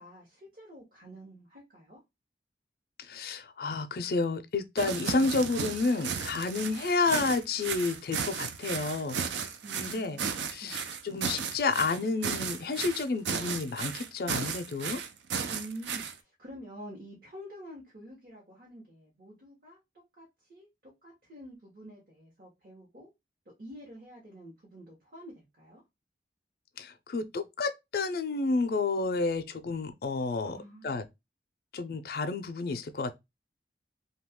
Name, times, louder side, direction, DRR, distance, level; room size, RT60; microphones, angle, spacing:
voice 1, 0.0-2.0 6.6-6.7 9.6-10.8 15.5-19.8 20.2-20.7 21.0-23.1 23.6-25.8 30.4-31.0, right 1 dB, 50° right, 0.9 m, -48 dB
voice 2, 3.1-9.2 9.7-10.2 10.5-15.0 26.8-30.6 30.8-31.1 31.7-33.1, left 3 dB, 55° left, 0.4 m, -30 dB
sound 1, 4.8-16.1, right 6 dB, 85° right, 0.4 m, -34 dB
2.7 x 2.3 x 3.4 m
head